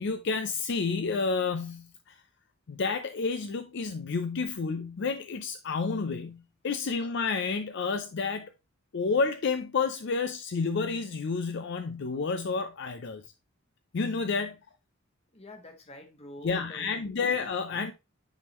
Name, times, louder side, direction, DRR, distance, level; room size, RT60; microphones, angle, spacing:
voice 1, 0.0-2.2 2.7-8.5 8.9-13.2 13.9-14.6 16.4-17.9, left 4 dB, 60° left, 0.5 m, -30 dB
voice 2, 15.3-17.3, left 1 dB, 30° left, 1.3 m, -47 dB
9.8 x 3.6 x 3.0 m
head